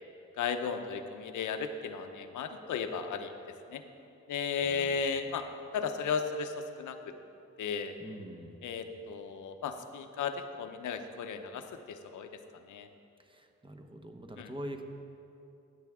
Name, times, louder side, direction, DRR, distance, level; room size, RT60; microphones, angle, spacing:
voice 1, 0.4-3.3 3.7-3.8 4.3-5.4 5.7-7.0 7.6-7.9 8.6-12.3 12.7-12.9 14.4-14.5, left 6 dB, 85° left, 8 dB, 0.7 m, -35 dB
voice 2, 4.6-5.0 8.0-8.6 13.2-14.8, right 1 dB, 15° right, 5 dB, 1.0 m, -44 dB
15.0 x 7.8 x 3.6 m, 2.8 s
cardioid pair, 65°, 30 cm